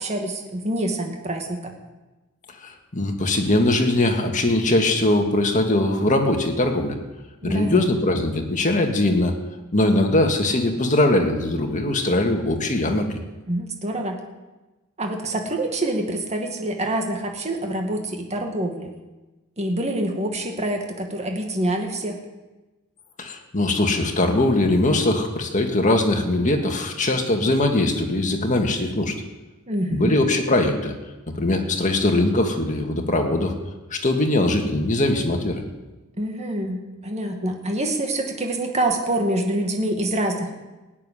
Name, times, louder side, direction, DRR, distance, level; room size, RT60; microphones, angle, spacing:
voice 1, 0.0-1.7 7.4-7.8 13.5-14.2 15.0-18.9 19.6-22.2 29.7-30.2 36.2-40.5, right 1 dB, 30° right, 2 dB, 2.1 m, -26 dB
voice 2, 2.6-7.0 7.4-9.3 9.7-13.1 23.2-29.1 29.9-30.9 31.3-33.5 33.9-35.6, left 2 dB, 35° left, 3 dB, 2.0 m, -21 dB
17.0 x 7.6 x 10.0 m, 1.1 s
head